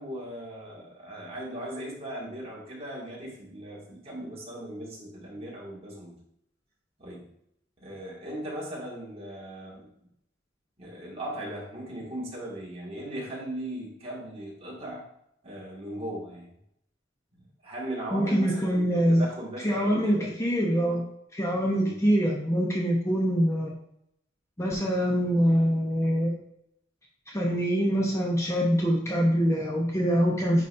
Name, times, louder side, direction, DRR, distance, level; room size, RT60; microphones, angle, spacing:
voice 1, 0.0-6.1 7.0-7.3 7.8-9.9 10.8-15.0 15.4-16.5 17.3-20.3 21.8-21.9, right 1 dB, 30° right, -4 dB, 2.1 m, -38 dB
voice 2, 18.1-19.2 19.6-21.0 21.3-23.7 24.6-26.3 27.3-30.7, equal, 15° left, -2 dB, 0.8 m, -24 dB
9.5 x 4.1 x 2.7 m, 0.76 s
head